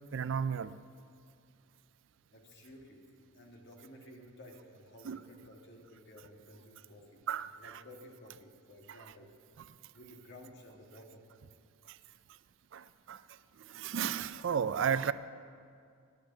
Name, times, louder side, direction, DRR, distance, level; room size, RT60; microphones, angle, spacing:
voice 1, 0.1-0.7 5.0-5.2 7.3-7.8 11.9-12.0 12.7-15.1, right 7 dB, 55° right, 15 dB, 0.4 m, -34 dB
voice 2, 2.3-7.2 7.6-9.3 9.9-11.3, left 1 dB, 50° left, 0 dB, 2.0 m, -54 dB
10.0 x 9.1 x 10.0 m, 2.3 s
head